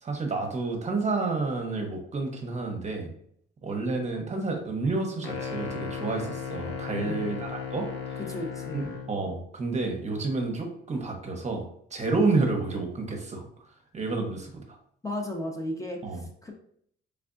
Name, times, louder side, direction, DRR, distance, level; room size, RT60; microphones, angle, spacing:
voice 1, 0.0-3.1 3.6-7.9 8.7-8.8 9.1-13.5 13.9-14.6 16.0-16.2, right 3 dB, 35° right, 2 dB, 0.8 m, -29 dB
sound 1, 5.2-9.2, left 6 dB, 85° left, 0.6 m, -36 dB
voice 2, 6.9-7.3 8.3-8.9 15.0-16.5, left 1 dB, 15° left, 0 dB, 0.7 m, -35 dB
3.4 x 3.3 x 2.5 m, 0.65 s
cardioid pair, 90°, 20 cm